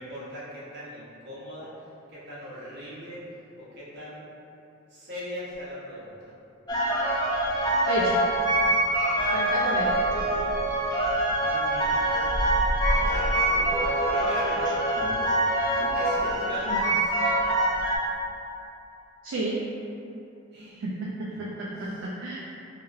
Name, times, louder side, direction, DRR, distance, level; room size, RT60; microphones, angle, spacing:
voice 1, 0.0-3.2 3.6-4.2 4.9-6.3 9.1-9.5 11.2-12.1 12.9-14.8 15.9-17.1 20.5-20.9 21.3-22.1, equal, 55° right, -9 dB, 0.9 m, -40 dB
sound 1, 6.7-18.0, right 1 dB, 20° left, 0.4 m, -24 dB
voice 2, 7.9-8.2 9.3-10.0 16.7-16.8 19.2-19.6 20.8-22.4, right 1 dB, 70° right, -5 dB, 0.3 m, -31 dB
2.9 x 2.8 x 2.5 m, 2.8 s
head